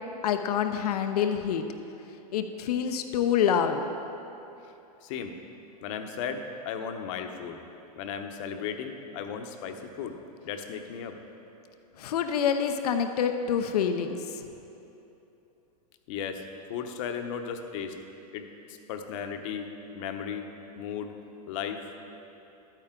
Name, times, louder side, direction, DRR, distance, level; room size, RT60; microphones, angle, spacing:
voice 1, 0.2-1.6 2.3-3.8 12.0-14.4, left 8 dB, 80° left, 7 dB, 0.7 m, -26 dB
voice 2, 5.0-5.3 5.8-7.6 8.0-10.1 10.4-11.2 16.1-16.4 16.7-17.9 18.3-19.7 19.9-20.5 20.8-21.1 21.5-21.8, left 7 dB, 55° left, 6 dB, 0.9 m, -35 dB
12.5 x 9.1 x 3.7 m, 2.9 s
hypercardioid pair, 120°, 20 cm